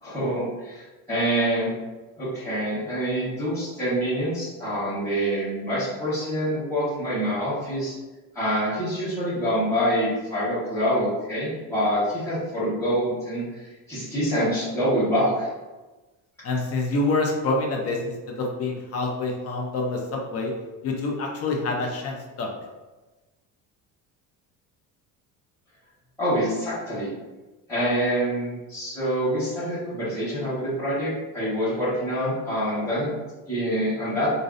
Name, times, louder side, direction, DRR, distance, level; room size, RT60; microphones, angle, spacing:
voice 1, 0.0-1.7 2.2-7.9 8.3-13.4 13.9-15.5 26.2-27.1 27.7-33.1 33.5-34.3, equal, 5° left, -16 dB, 1.1 m, -26 dB
voice 2, 16.4-20.5 20.8-22.5, left 2 dB, 40° left, 0 dB, 0.4 m, -27 dB
2.6 x 2.0 x 2.4 m, 1.2 s
cardioid pair, 140°, 38 cm